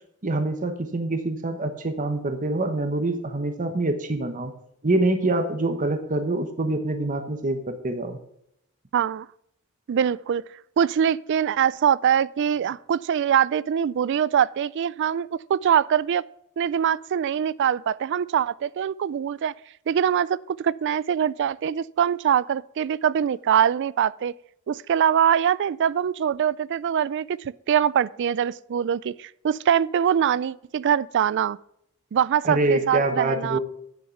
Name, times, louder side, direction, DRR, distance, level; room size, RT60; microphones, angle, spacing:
voice 1, 0.2-4.5 4.8-8.2 32.4-33.6, right 2 dB, 40° right, 0.9 m, -25 dB
voice 2, 8.9-9.3 9.9-10.4 10.8-16.2 16.6-19.5 19.9-24.3 24.7-27.4 27.7-31.6 32.1-33.6, right 8 dB, 55° right, 0.3 m, -23 dB
9.5 x 6.5 x 5.8 m
head